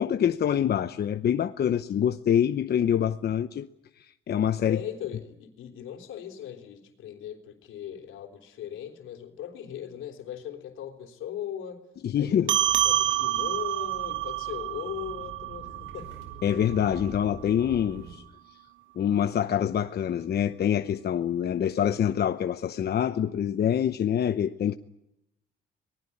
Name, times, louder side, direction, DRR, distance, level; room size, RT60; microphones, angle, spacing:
voice 1, 0.0-3.7 4.0-4.8 12.0-12.6 16.4-18.2 19.0-24.8, left 9 dB, 55° left, 0.9 m, -25 dB
voice 2, 4.6-11.9 12.2-16.1, left 10 dB, 85° left, 3.6 m, -39 dB
sound 1, 12.5-17.3, right 13 dB, 75° right, 1.4 m, -28 dB
sound 2, 12.6-18.1, right 4 dB, 90° right, 5.5 m, -45 dB
25.0 x 19.5 x 9.9 m
cardioid pair, 90°, 20 cm